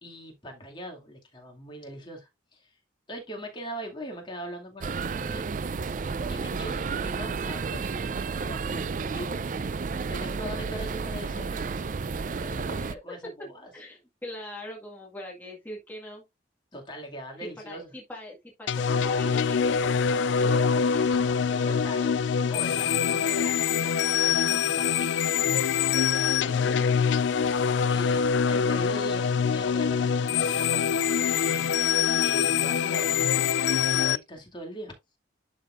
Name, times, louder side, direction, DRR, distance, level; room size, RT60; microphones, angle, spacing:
voice 1, 0.0-2.7 3.1-5.5 6.3-9.4 10.1-11.7 12.4-13.7 16.7-17.9 21.6-22.1 22.5-25.4 25.9-26.9 27.9-28.2 28.5-30.8 31.3-31.8 32.2-34.9, equal, 25° left, 2.3 m, -41 dB
sound 1, 4.8-12.9, right 4 dB, 45° right, 0.4 m, -31 dB
voice 2, 13.7-16.2 17.7-21.6, left 2 dB, 10° left, 1.8 m, -41 dB
sound 2, 18.7-34.2, left 7 dB, 70° left, 0.3 m, -24 dB
11.5 x 4.3 x 2.5 m
head